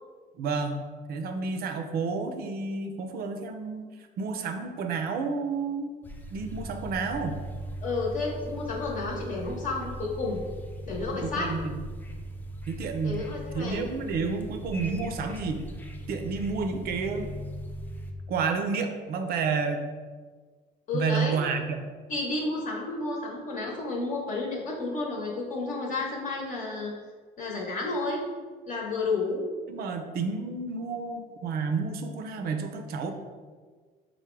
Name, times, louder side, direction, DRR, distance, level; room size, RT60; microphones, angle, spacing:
voice 1, 0.4-0.8 1.1-3.9 4.2-6.0 6.3-7.3 11.1-11.8 12.7-13.2 13.5-15.6 16.1-17.3 18.3-19.8 20.9-21.8 29.7-33.1, right 4 dB, 65° right, 6 dB, 0.5 m, -30 dB
sound 1, 6.0-18.1, right 1 dB, 10° left, 0.4 m, -39 dB
voice 2, 7.8-10.4 10.8-11.5 13.0-13.9 20.9-21.4 22.1-26.9 27.4-28.3 28.7-29.4, left 3 dB, 50° left, -2 dB, 0.9 m, -31 dB
4.6 x 2.1 x 4.5 m, 1.5 s
cardioid pair, 110°, 17 cm